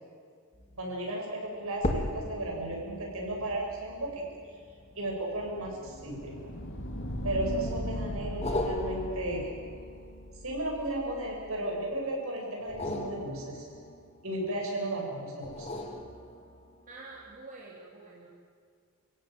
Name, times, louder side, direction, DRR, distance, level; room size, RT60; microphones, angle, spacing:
sound 1, 0.5-0.9 1.7-6.4 7.1-7.7 8.4-11.4 12.6-14.7 15.4-16.8 17.3-17.4, left 1 dB, 30° left, 1.9 m, -38 dB
voice 1, 0.8-4.2 5.0-6.4 7.2-9.5 10.4-13.7 14.2-15.7, right 1 dB, 65° right, -1 dB, 7.2 m, -34 dB
sound 2, 4.7-11.5, equal, 55° left, 2.7 m, -39 dB
voice 2, 16.9-18.3, right 3 dB, 35° right, -5 dB, 3.3 m, -47 dB
29.0 x 16.0 x 9.2 m, 2.2 s
head